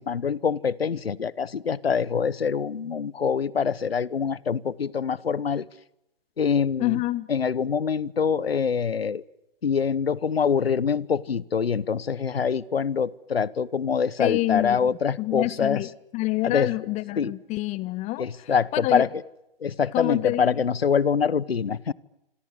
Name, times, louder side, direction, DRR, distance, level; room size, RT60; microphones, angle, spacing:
voice 1, 0.0-5.7 6.4-7.0 7.3-9.2 9.6-15.8 16.4-16.7 17.1-17.3 18.2-19.1 19.6-21.9, left 6 dB, 85° left, 22 dB, 1.0 m, -25 dB
voice 2, 6.8-7.3 14.2-14.9 15.2-19.1 19.9-20.6, left 18 dB, 25° left, 19 dB, 0.9 m, -27 dB
26.5 x 25.5 x 8.3 m, 0.87 s
figure-of-eight pair, 125°, 29 cm